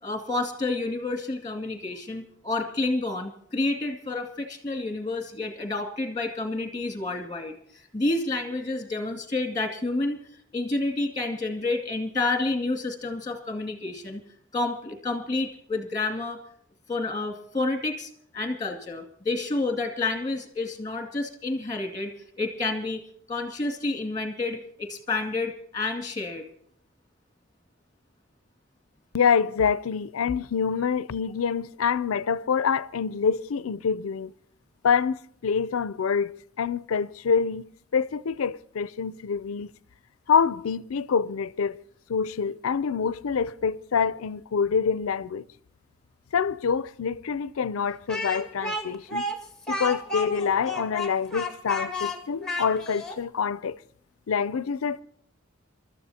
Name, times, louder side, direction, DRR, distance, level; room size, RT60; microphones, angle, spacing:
voice 1, 0.0-10.2 10.5-14.2 14.5-16.4 16.9-22.1 22.4-23.0 23.3-26.5, left 2 dB, 20° left, 2.2 m, -29 dB
voice 2, 29.1-34.3 34.8-39.7 40.3-41.8 42.1-45.5 46.3-49.2 49.7-53.8 54.3-55.0, left 6 dB, 85° left, 0.5 m, -26 dB
Speech, 48.1-53.2, left 2 dB, 5° left, 1.8 m, -32 dB
28.5 x 13.0 x 2.8 m
head